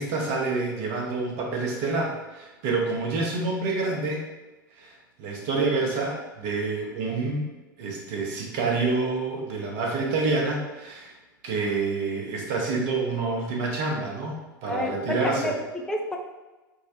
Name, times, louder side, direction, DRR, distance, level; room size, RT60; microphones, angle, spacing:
voice 1, 0.0-4.3 4.8-7.5 7.8-11.1 11.4-15.5, right 3 dB, 50° right, -1 dB, 0.9 m, -28 dB
voice 2, 14.7-16.2, left 1 dB, 5° left, 1 dB, 0.4 m, -30 dB
4.6 x 2.1 x 2.8 m, 1.2 s
figure-of-eight pair, 85°, 11 cm